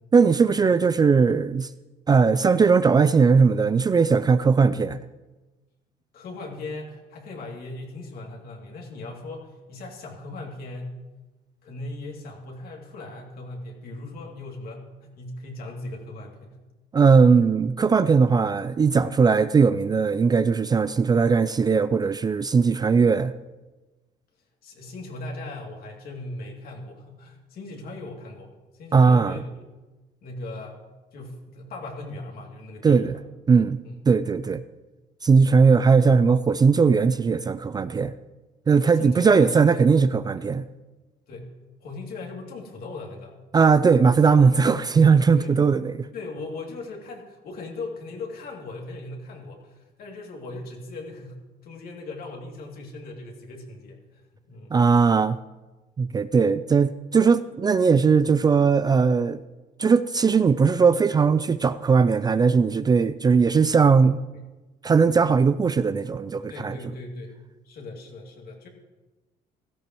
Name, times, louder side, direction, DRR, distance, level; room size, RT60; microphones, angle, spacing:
voice 1, 0.1-1.7 2.1-5.0 16.9-23.3 28.9-29.4 32.8-33.2 33.5-33.8 34.1-34.6 35.2-38.1 38.7-40.6 43.5-46.1 54.7-55.4 56.0-59.4 59.8-64.2 64.8-66.7, right 5 dB, 25° right, 0.4 m, -19 dB
voice 2, 6.1-11.0 11.6-16.6 24.6-28.5 28.8-29.6 30.2-30.8 31.1-33.2 33.8-34.0 38.8-39.8 40.4-40.5 41.3-41.5 41.8-43.3 45.4-45.6 46.1-54.2 54.5-54.8 66.5-67.3 67.6-68.7, left 2 dB, 60° left, 2.7 m, -38 dB
16.5 x 13.5 x 3.1 m
cardioid pair, 110°, 17 cm